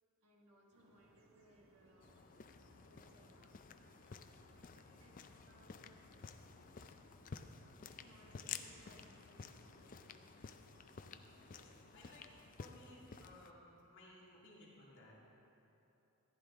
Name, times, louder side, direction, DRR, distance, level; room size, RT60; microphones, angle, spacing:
voice 1, 0.2-2.2 2.7-3.6 4.5-5.9 6.5-7.0 8.0-10.1 10.4-10.9, right 1 dB, 85° right, -1 dB, 1.4 m, -68 dB
sound 1, 0.7-12.2, right 1 dB, 65° right, 1.3 m, -68 dB
sound 2, 2.0-13.5, left 6 dB, 40° left, 0.4 m, -53 dB
voice 2, 11.5-12.3 12.6-15.2, left 1 dB, 55° left, -5 dB, 2.0 m, -60 dB
14.5 x 10.0 x 3.6 m, 2.9 s
head